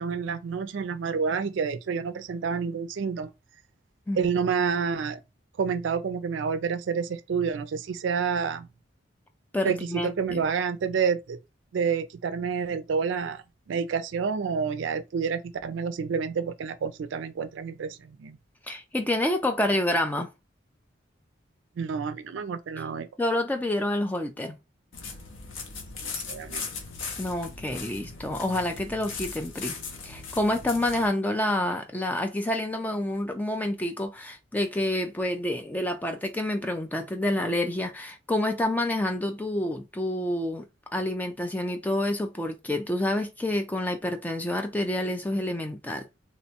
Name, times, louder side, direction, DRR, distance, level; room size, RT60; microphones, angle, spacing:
voice 1, 0.0-3.3 4.2-5.2 5.6-8.7 9.6-11.4 11.7-18.4 21.8-23.1 26.0-26.7, right 6 dB, 70° right, 0.4 m, -29 dB
voice 2, 9.5-10.5 18.7-20.3 23.2-24.6 27.2-29.8 30.0-40.7 40.9-46.1, left 1 dB, 10° left, 0.3 m, -28 dB
sound 1, 24.9-31.1, left 5 dB, 85° left, 0.7 m, -38 dB
2.8 x 2.1 x 2.8 m
head